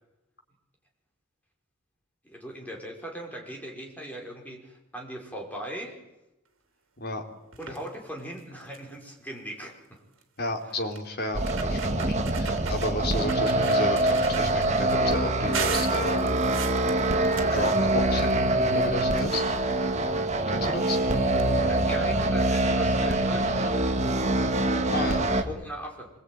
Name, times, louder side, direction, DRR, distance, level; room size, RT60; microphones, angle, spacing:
voice 1, 2.2-6.0 7.6-10.0 21.7-24.4 25.5-26.1, equal, 10° left, 1 dB, 5.0 m, -39 dB
sound 1, 7.5-7.9 8.4-8.5 8.7-9.0 10.2-10.3 10.9-11.0 11.4-12.9 13.3-15.0 15.5-18.3 18.6-19.7 20.6-20.7 21.0-21.1 21.3-21.4, right 7 dB, 70° right, 3.5 m, -37 dB
voice 2, 10.4-16.3 17.5-19.4 20.5-21.0 22.8-23.0 24.9-25.6, left 2 dB, 50° left, 4 dB, 3.4 m, -33 dB
sound 2, 11.3-25.4, right 2 dB, 35° right, 1.7 m, -24 dB
25.0 x 21.5 x 9.2 m, 0.96 s
head